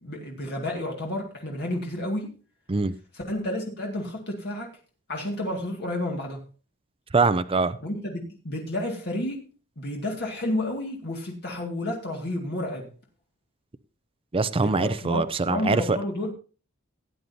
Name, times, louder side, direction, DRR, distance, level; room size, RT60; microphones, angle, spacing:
voice 1, 0.0-2.4 3.1-4.7 5.1-6.4 7.8-9.4 9.8-12.9 14.6-16.3, left 1 dB, 50° left, 2.1 m, -31 dB
voice 2, 7.1-7.8 14.3-16.0, right 3 dB, 25° right, 0.5 m, -23 dB
17.5 x 9.5 x 2.8 m
head